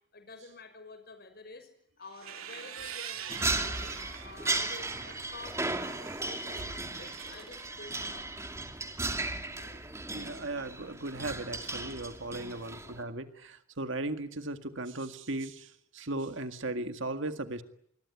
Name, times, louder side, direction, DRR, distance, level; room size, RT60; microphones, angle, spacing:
voice 1, 0.1-1.7 2.0-8.3 9.6-9.8 12.4-12.6, left 3 dB, 50° left, 8 dB, 6.0 m, -50 dB
sound 1, 2.0-4.3 4.8-7.6, right 8 dB, 90° right, 2.8 m, -45 dB
Applause, 2.2-9.4, right 6 dB, 45° right, 4.0 m, -55 dB
sound 2, 3.3-13.0, right 2 dB, 15° right, 2.5 m, -36 dB
voice 2, 10.1-17.6, right 2 dB, 60° right, 9 dB, 2.0 m, -37 dB
26.0 x 22.0 x 9.7 m, 0.73 s
head